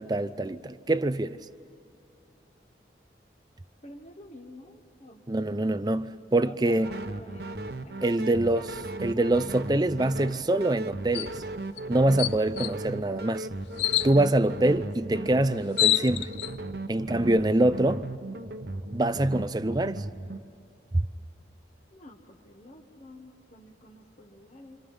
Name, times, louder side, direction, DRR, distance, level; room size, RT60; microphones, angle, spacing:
voice 1, 0.0-1.4 5.3-6.9 8.0-8.7 9.0-11.4 11.9-13.5 14.0-16.3 16.9-18.0 18.9-20.0 20.9-21.0, right 1 dB, 20° right, 0.5 m, -25 dB
voice 2, 3.8-5.3 6.4-7.5 7.8-8.4 17.0-17.1 21.9-24.8, left 1 dB, 35° left, 1.4 m, -49 dB
sound 1, 6.8-20.4, right 2 dB, 60° right, 1.1 m, -37 dB
sound 2, 11.1-11.3 11.8-11.9 12.2-12.7 13.8-14.1 15.3-15.4 15.5-16.5, left 14 dB, 70° left, 0.5 m, -26 dB
28.5 x 26.0 x 5.6 m
head